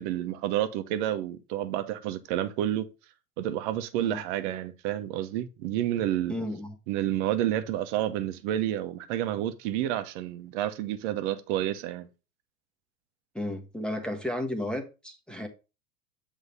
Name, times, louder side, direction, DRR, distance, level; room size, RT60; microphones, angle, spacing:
voice 1, 0.0-2.9 3.4-6.3 6.9-12.1, right 12 dB, 55° right, 1.1 m, -29 dB
voice 2, 6.3-6.7 13.3-15.5, left 1 dB, ahead, 1.3 m, -33 dB
8.0 x 3.7 x 5.5 m
figure-of-eight pair, 85°, 45 cm